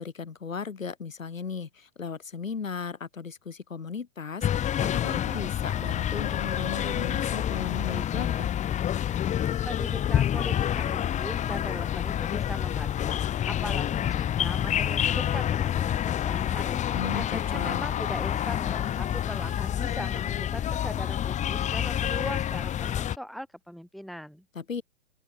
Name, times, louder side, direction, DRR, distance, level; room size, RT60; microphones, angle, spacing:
voice 1, 0.0-8.5 16.9-17.9 24.5-24.8, left 5 dB, 80° left, 3.4 m, -36 dB
sound 1, 4.4-23.2, left 10 dB, 20° left, 1.9 m, -28 dB
voice 2, 9.7-16.8 17.1-24.4, equal, ahead, 2.0 m, -40 dB
open air
figure-of-eight pair, 115°, 39 cm